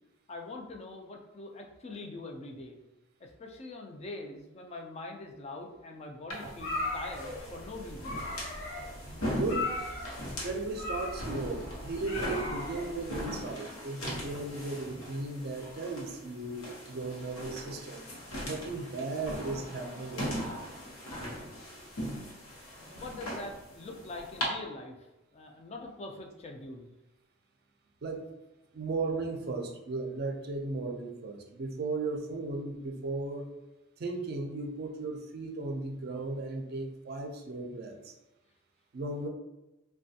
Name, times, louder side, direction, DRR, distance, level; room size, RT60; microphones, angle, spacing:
voice 1, 0.3-2.8 3.2-8.3 22.9-25.1 25.3-26.9, left 2 dB, 30° left, 2 dB, 0.3 m, -43 dB
sound 1, 6.3-24.5, equal, 90° left, 0.9 m, -40 dB
sound 2, 6.6-13.2, left 2 dB, 60° left, 0.9 m, -38 dB
voice 2, 9.3-9.7 10.4-18.1 18.4-20.6 28.0-28.3 28.7-33.5 34.0-38.1 38.9-39.3, right 3 dB, 50° right, 4 dB, 0.4 m, -36 dB
3.2 x 2.2 x 2.7 m, 1.0 s
head